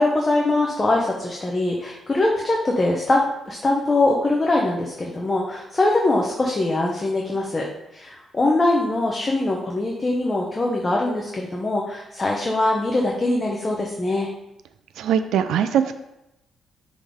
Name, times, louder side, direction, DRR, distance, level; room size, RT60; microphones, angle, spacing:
voice 1, 0.0-7.7 7.9-14.3, left 2 dB, 20° left, -1 dB, 0.7 m, -22 dB
voice 2, 15.0-16.0, right 8 dB, 80° right, 9 dB, 0.4 m, -21 dB
10.5 x 3.9 x 3.5 m, 0.89 s
cardioid pair, 170°, 0 cm